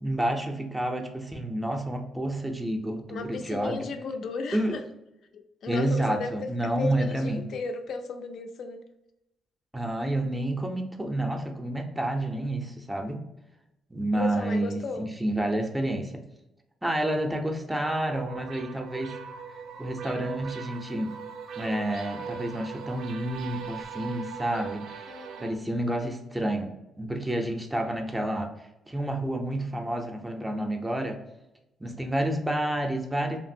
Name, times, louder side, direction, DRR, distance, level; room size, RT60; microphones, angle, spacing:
voice 1, 0.0-3.9 4.5-4.8 5.7-7.4 9.7-13.2 13.9-16.2 16.8-19.1 19.8-21.1 21.6-25.1 25.4-26.7 27.0-28.5 28.9-31.2 31.8-33.4, right 1 dB, 10° right, 3 dB, 0.4 m, -29 dB
voice 2, 3.1-4.8 5.3-8.8 14.1-15.1 25.1-25.8, left 4 dB, 65° left, 7 dB, 0.4 m, -35 dB
sound 1, 17.8-25.5, right 6 dB, 80° right, 0.3 m, -40 dB
2.7 x 2.5 x 2.6 m, 0.90 s
cardioid pair, 90°, 0 cm